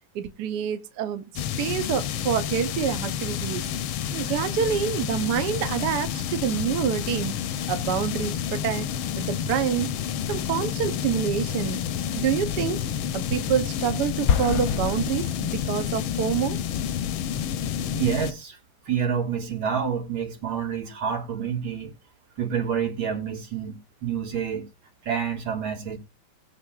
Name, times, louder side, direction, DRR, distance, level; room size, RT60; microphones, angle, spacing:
voice 1, 0.1-1.3 1.6-3.6 4.1-7.4 7.7-8.9 9.2-9.9 10.3-11.8 12.2-12.8 13.1-16.6, right 9 dB, 65° right, 1.2 m, -27 dB
sound 1, 1.4-18.3, left 9 dB, 85° left, 1.5 m, -29 dB
Explosion, 14.3-16.1, left 7 dB, 60° left, 1.0 m, -27 dB
voice 2, 17.9-18.6 18.8-21.9 22.4-24.7 25.0-26.0, right 7 dB, 85° right, 2.7 m, -28 dB
20.0 x 6.9 x 2.4 m
omnidirectional pair, 2.2 m